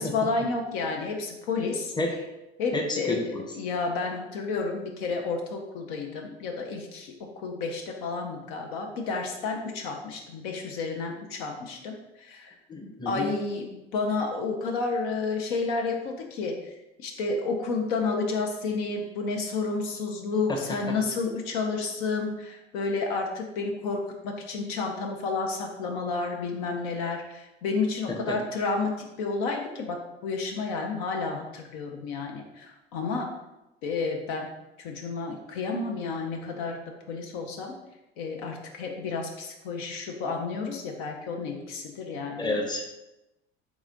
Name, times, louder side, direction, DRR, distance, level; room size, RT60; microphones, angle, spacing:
voice 1, 0.0-1.9 2.6-7.1 7.4-12.5 13.1-33.3 33.8-34.5 34.8-36.8 37.1-37.7 38.2-42.5, left 4 dB, 65° left, 2 dB, 0.7 m, -31 dB
voice 2, 2.7-3.4 12.7-13.3 20.5-20.6 28.3-28.4 42.4-42.8, left 2 dB, 15° left, 2 dB, 0.8 m, -29 dB
3.6 x 3.0 x 3.7 m, 0.95 s
hypercardioid pair, 60°, 32 cm